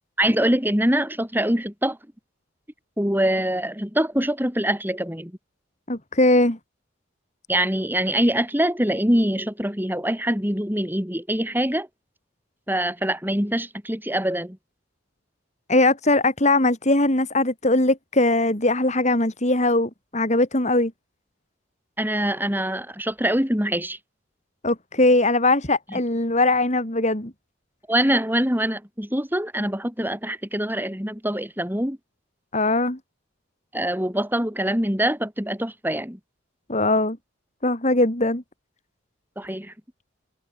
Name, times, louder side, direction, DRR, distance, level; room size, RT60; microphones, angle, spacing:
voice 1, 0.2-2.0 3.0-5.3 7.5-11.9 12.7-14.6 22.0-24.0 27.9-32.0 33.7-36.2 39.4-39.7, right 1 dB, 10° right, 6.7 m, -24 dB
voice 2, 5.9-6.6 15.7-20.9 24.6-27.3 32.5-33.0 36.7-37.2 37.6-38.4, left 2 dB, 35° left, 3.2 m, -20 dB
head